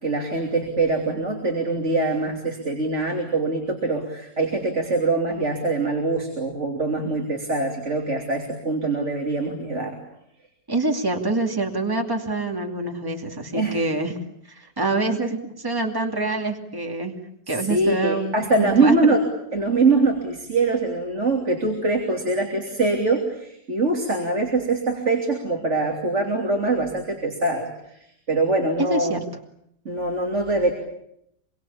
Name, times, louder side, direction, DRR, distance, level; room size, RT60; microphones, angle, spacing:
voice 1, 0.0-10.0 13.5-13.8 17.5-19.2 19.5-27.7 28.3-29.2 29.9-30.7, right 3 dB, 40° right, 1 dB, 3.5 m, -23 dB
voice 2, 10.7-14.1 14.5-17.2 17.5-19.2 28.9-29.2, right 2 dB, 10° right, 3 dB, 2.5 m, -26 dB
26.5 x 23.5 x 8.7 m, 0.75 s
omnidirectional pair, 1.8 m